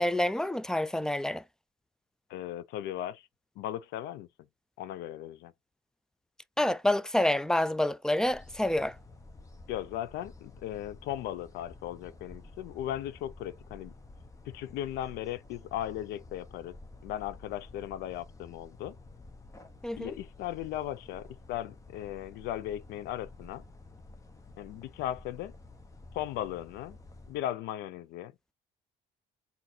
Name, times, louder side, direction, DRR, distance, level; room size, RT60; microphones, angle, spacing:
voice 1, 0.0-1.4 6.6-9.0 19.8-20.2, left 1 dB, 5° left, 0.3 m, -28 dB
voice 2, 2.3-3.3 3.6-4.3 4.8-5.5 9.7-13.9 14.5-16.8 17.0-19.0 20.0-23.6 24.6-25.5 26.1-27.0 27.3-28.3, left 12 dB, 85° left, 0.5 m, -37 dB
sound 1, 8.2-27.4, left 2 dB, 20° left, 0.9 m, -51 dB
4.0 x 2.6 x 4.3 m
cardioid pair, 110°, 17 cm